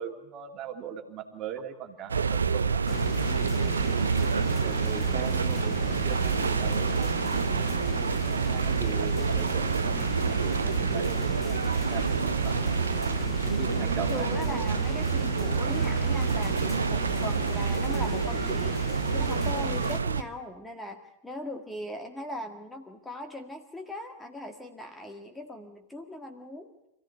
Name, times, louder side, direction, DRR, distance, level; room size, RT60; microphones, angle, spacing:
voice 1, 0.0-3.3 4.5-7.2 7.6-7.9 8.4-12.8 13.4-14.6, right 8 dB, 35° right, 4 dB, 2.6 m, -40 dB
sound 1, 2.1-20.2, right 5 dB, 75° right, 0.8 m, -27 dB
sound 2, 2.9-20.0, left 8 dB, 25° left, 0.8 m, -38 dB
voice 2, 14.1-18.8 19.1-26.7, left 1 dB, 5° left, 4 dB, 1.9 m, -39 dB
26.0 x 15.5 x 9.3 m, 0.91 s
figure-of-eight pair, 90°, 0 cm